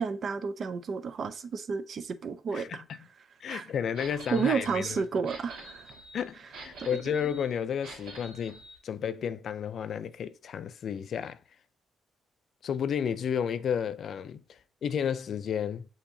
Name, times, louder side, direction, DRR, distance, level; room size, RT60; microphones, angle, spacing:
voice 1, 0.0-2.8 3.5-3.7 4.3-5.9, right 5 dB, 50° right, 0.5 m, -31 dB
voice 2, 2.5-3.0 3.4-5.0 6.1-11.4 12.6-15.9, left 8 dB, 60° left, 0.3 m, -32 dB
sound 1, 4.0-8.8, right 1 dB, 85° right, 1.4 m, -47 dB
6.8 x 2.8 x 2.7 m
cardioid pair, 90°, 0 cm